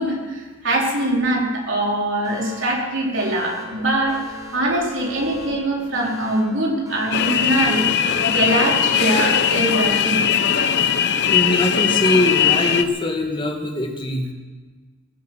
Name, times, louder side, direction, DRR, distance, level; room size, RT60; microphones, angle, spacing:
voice 1, 0.0-7.8 8.3-10.3, right 1 dB, 60° right, -2 dB, 4.2 m, -22 dB
Alarm, 2.2-10.3, equal, 20° right, 3.5 m, -40 dB
Bird, 3.0-3.1 3.3-5.9 6.9-7.2 7.4-9.9, right 2 dB, 85° right, 6.2 m, -37 dB
sound 1, 7.1-12.8, left 8 dB, 55° left, 0.8 m, -19 dB
voice 2, 11.3-14.3, left 1 dB, 25° left, 2 dB, 2.0 m, -22 dB
19.5 x 9.2 x 7.8 m, 1.4 s
head